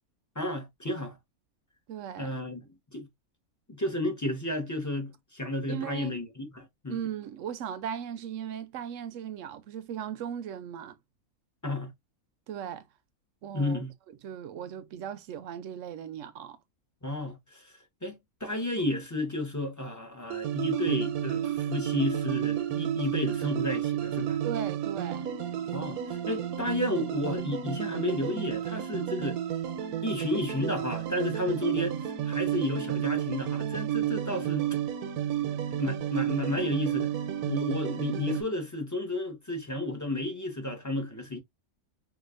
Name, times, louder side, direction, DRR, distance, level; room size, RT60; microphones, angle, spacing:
voice 1, 0.4-1.2 2.2-2.6 2.9-3.1 3.7-7.0 11.6-11.9 13.5-13.9 17.0-24.4 25.7-29.4 30.0-34.7 35.8-37.1 37.4-41.4, left 1 dB, 15° left, 0.6 m, -32 dB
voice 2, 1.9-2.3 5.7-6.1 6.9-11.0 12.5-12.8 13.4-13.8 14.2-16.6 24.4-25.3, right 9 dB, 65° right, 0.9 m, -37 dB
sound 1, 20.3-38.4, right 10 dB, 85° right, 1.2 m, -31 dB
4.8 x 2.5 x 2.4 m
omnidirectional pair, 1.5 m